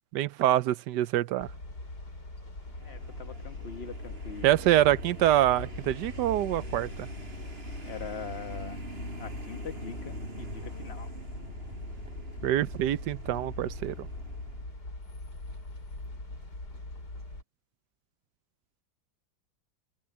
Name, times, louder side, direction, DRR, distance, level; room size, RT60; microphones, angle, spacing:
voice 1, 0.1-1.5 4.4-7.1 12.4-14.1, right 13 dB, 80° right, 1.3 m, -25 dB
sound 1, 1.4-17.4, left 2 dB, 70° left, 6.5 m, -41 dB
Vehicle, 2.6-14.9, right 2 dB, 35° right, 4.9 m, -45 dB
voice 2, 2.8-4.6 7.8-8.8 9.1-11.1, left 6 dB, 40° left, 1.4 m, -42 dB
omnidirectional pair, 1.8 m